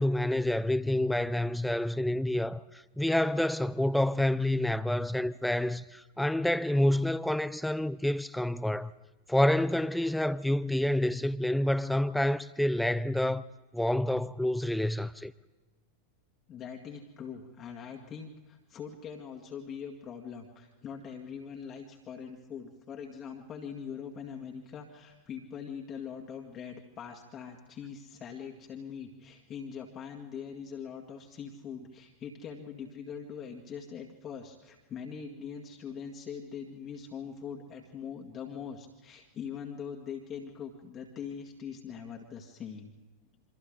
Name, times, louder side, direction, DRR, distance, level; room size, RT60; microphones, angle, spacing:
voice 1, 0.0-2.6 3.0-8.9 9.3-13.4 13.7-15.3, left 1 dB, ahead, 0.6 m, -28 dB
voice 2, 16.5-42.9, left 7 dB, 30° left, 2.0 m, -42 dB
28.0 x 24.5 x 3.9 m
figure-of-eight pair, 90°, 0 cm